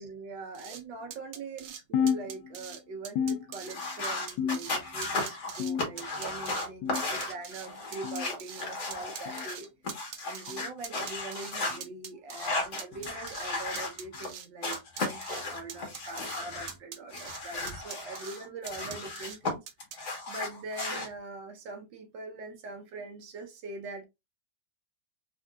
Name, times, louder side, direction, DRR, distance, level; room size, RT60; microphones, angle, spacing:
voice 1, 0.0-9.7 9.9-19.6 20.3-24.0, right 3 dB, 80° right, 1.6 m, -42 dB
sound 1, 0.5-0.8 1.1-1.8 2.1-2.8 3.0-3.8 4.0-4.8 5.0-5.7 6.0-6.7 6.9-8.7 8.9-10.6 10.8-11.5 11.8-12.5 12.8-13.5 13.8-14.5 14.7-15.4 15.7-16.4 16.7-17.4 17.7-18.4 18.7-19.4 19.7-20.0, right 8 dB, 60° right, 0.9 m, -43 dB
sound 2, 1.9-2.8 3.2-4.0 4.4-5.0 5.6-6.2 6.8-7.2 8.0-8.3 9.3-9.5 10.5-10.7 11.7-11.9 12.9-13.1 14.1-14.3 15.4-15.5 16.6-16.7, left 7 dB, 80° left, 1.2 m, -32 dB
sound 3, 3.6-9.5 9.8-11.8 12.3-14.3 14.6-16.7 17.1-19.5 19.8-21.1, left 2 dB, 45° left, 1.5 m, -35 dB
3.8 x 3.4 x 2.3 m
omnidirectional pair, 2.0 m